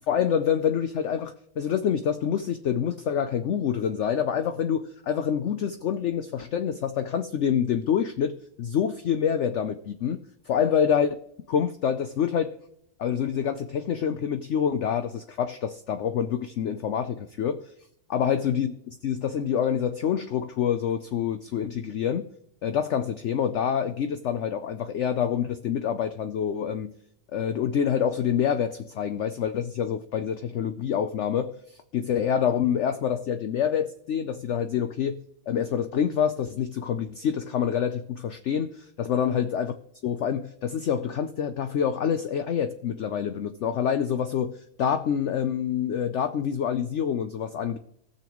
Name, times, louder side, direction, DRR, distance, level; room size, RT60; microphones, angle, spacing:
voice 1, 0.1-10.2 10.5-11.1 11.5-12.5 13.0-17.6 18.1-22.3 22.6-26.9 27.3-35.2 35.5-39.7 40.0-47.8, left 8 dB, 60° left, 0.8 m, -26 dB
18.5 x 6.8 x 3.0 m
omnidirectional pair, 1.7 m